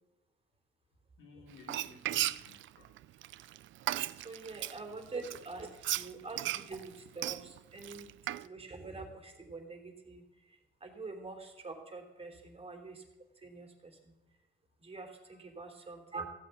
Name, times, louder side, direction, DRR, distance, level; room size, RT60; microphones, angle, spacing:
voice 1, 1.2-3.0 4.4-4.5 4.9-5.0 7.9-8.0 15.2-15.6, left 4 dB, 85° left, 1 dB, 3.7 m, -57 dB
Frying (food), 1.6-4.8 5.2-8.5, right 14 dB, 75° right, 0.5 m, -36 dB
voice 2, 4.2-5.7 5.9-8.1 8.4-10.2 10.8-13.0 13.4-13.7 14.0-14.1 14.8-16.3, right 3 dB, 30° right, 3 dB, 3.3 m, -45 dB
15.0 x 8.4 x 8.2 m, 0.98 s
cardioid pair, 90°, 20 cm